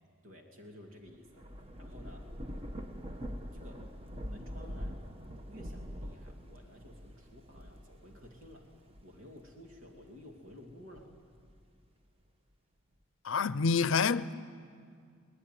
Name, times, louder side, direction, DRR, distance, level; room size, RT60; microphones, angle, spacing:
voice 1, 0.2-1.5 1.8-2.3 3.5-3.9 4.3-5.0 5.5-8.6 9.0-11.1, left 1 dB, 80° right, 2.5 m, -53 dB
Thunder / Rain, 1.1-10.0 10.5-11.9, equal, 30° right, 1.2 m, -44 dB
voice 2, 13.2-14.3, left 5 dB, 70° left, 0.6 m, -27 dB
22.0 x 19.5 x 9.3 m
head